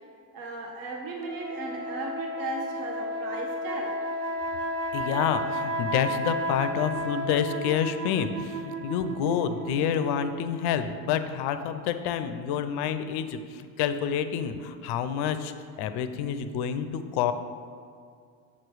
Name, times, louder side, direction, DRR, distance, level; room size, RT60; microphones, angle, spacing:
voice 1, 0.3-4.0, right 2 dB, 45° right, 1 dB, 0.9 m, -36 dB
sound 1, 1.1-10.9, equal, 85° right, 0.7 m, -33 dB
voice 2, 4.9-17.3, left 8 dB, 55° left, 10 dB, 0.5 m, -28 dB
7.4 x 3.1 x 4.6 m, 2.2 s
hypercardioid pair, 80°, 49 cm